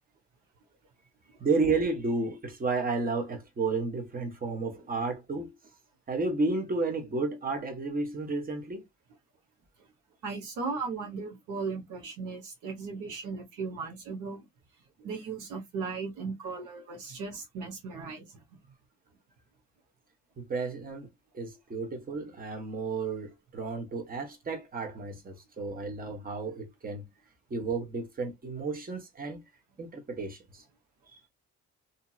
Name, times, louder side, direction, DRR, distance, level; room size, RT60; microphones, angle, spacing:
voice 1, 1.4-5.5 6.1-8.9 20.4-21.1 21.3-27.0 27.5-29.4 29.8-30.6 31.1-31.2, right 3 dB, 30° right, 1.1 m, -32 dB
voice 2, 10.2-14.4 15.0-18.4, right 4 dB, 85° right, 1.2 m, -37 dB
2.8 x 2.7 x 2.3 m
cardioid pair, 90°, 30 cm